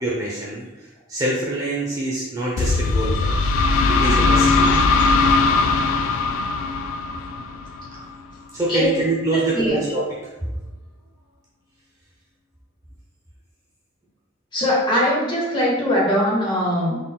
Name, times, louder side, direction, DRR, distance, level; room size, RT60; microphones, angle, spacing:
voice 1, 0.0-3.4 3.9-4.8 8.5-10.2, right 2 dB, 15° right, -5 dB, 0.5 m, -25 dB
sound 1, 2.6-8.2, left 3 dB, 80° left, 0.3 m, -19 dB
voice 2, 14.5-17.0, equal, 20° left, -4 dB, 1.0 m, -21 dB
3.8 x 3.8 x 2.2 m, 1.2 s
head